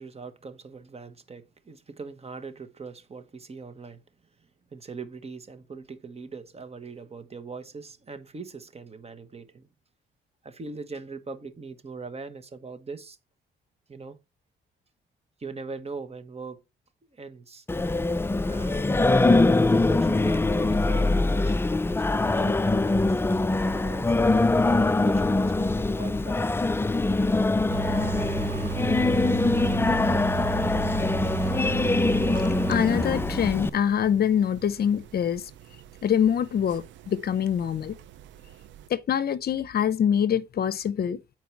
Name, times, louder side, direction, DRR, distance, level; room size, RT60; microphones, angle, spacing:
voice 1, 0.0-4.0 4.4-9.7 10.4-13.2 13.9-14.2 15.4-16.6 17.1-17.6 18.4-19.2 19.7-24.1 24.8-26.5, right 4 dB, 30° right, 1.2 m, -41 dB
Singing, 17.7-33.7, left 2 dB, 10° left, 0.4 m, -23 dB
sound 1, 27.7-38.9, right 20 dB, 75° right, 0.5 m, -37 dB
voice 2, 32.7-35.4 36.0-38.0 38.9-41.2, left 8 dB, 55° left, 0.6 m, -24 dB
8.3 x 4.6 x 4.6 m
cardioid pair, 75°, 19 cm